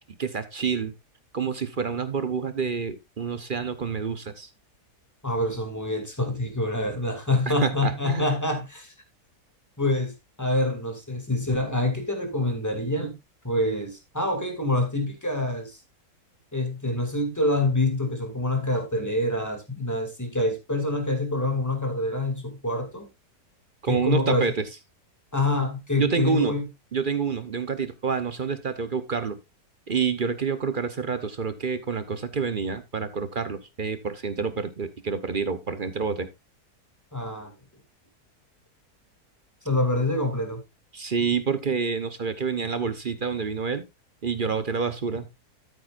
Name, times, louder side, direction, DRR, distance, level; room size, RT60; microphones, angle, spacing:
voice 1, 0.1-0.9 1.3-4.5 7.5-8.3 23.8-24.7 26.0-26.5 26.9-29.4 29.9-36.3 40.9-43.8 44.2-45.3, right 5 dB, 45° right, 0.8 m, -28 dB
voice 2, 5.2-8.9 9.8-13.2 13.4-15.8 16.5-23.1 23.8-24.5 25.3-26.7 37.1-37.5 39.6-40.6, left 2 dB, 10° left, 2.3 m, -26 dB
13.0 x 8.5 x 2.5 m
omnidirectional pair, 1.7 m